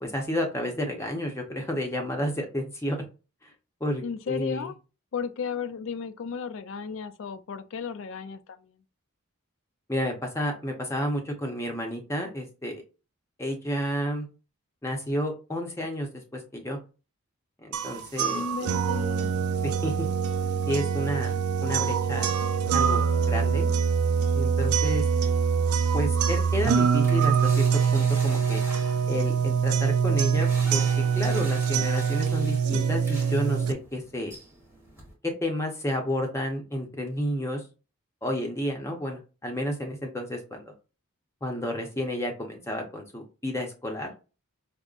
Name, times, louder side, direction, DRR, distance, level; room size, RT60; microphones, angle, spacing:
voice 1, 0.0-3.0 3.4-3.5 3.8-4.7 9.9-12.8 13.4-14.3 14.8-16.8 17.6-18.4 19.6-20.1 20.7-22.3 22.7-23.7 24.3-25.0 25.9-27.6 27.9-28.6 29.1-30.9 31.1-34.4 35.2-37.6 38.2-40.6 41.4-44.1, equal, 15° left, 0.7 m, -31 dB
voice 2, 4.0-4.7 5.1-8.7 18.3-19.3, left 6 dB, 65° left, 0.4 m, -34 dB
sound 1, 17.7-33.7, right 6 dB, 85° right, 0.4 m, -24 dB
sound 2, 25.0-35.1, right 1 dB, 10° right, 1.1 m, -45 dB
5.1 x 2.1 x 2.4 m
head